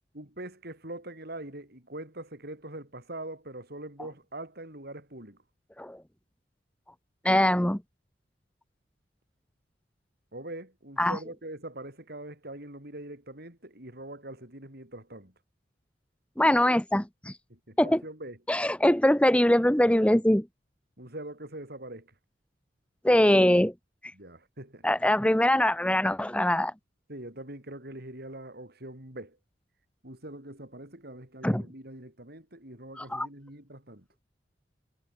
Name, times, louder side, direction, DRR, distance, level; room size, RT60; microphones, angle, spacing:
voice 1, 0.1-5.4 10.3-15.3 17.5-18.4 21.0-22.1 24.1-24.8 27.1-29.4 30.0-34.1, right 1 dB, 60° right, 7.5 m, -43 dB
voice 2, 7.2-7.8 11.0-11.2 16.4-17.3 17.8-18.0 18.5-20.4 23.0-23.7 24.8-26.7 31.4-31.6 33.0-33.3, left 1 dB, 5° left, 1.1 m, -22 dB
head